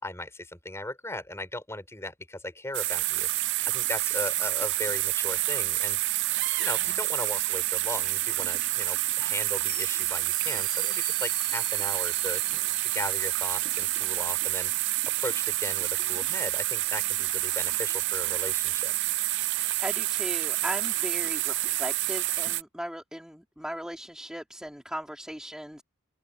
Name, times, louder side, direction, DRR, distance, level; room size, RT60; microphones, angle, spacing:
voice 1, 0.0-3.3 3.7-6.0 6.6-12.4 12.8-14.7 15.2-18.9, left 1 dB, 15° left, 5.5 m, -37 dB
sound 1, 2.7-22.6, right 17 dB, 55° right, 0.4 m, -28 dB
sound 2, 9.6-21.7, left 11 dB, 45° left, 5.9 m, -52 dB
voice 2, 19.8-25.8, equal, 5° right, 2.6 m, -37 dB
open air
head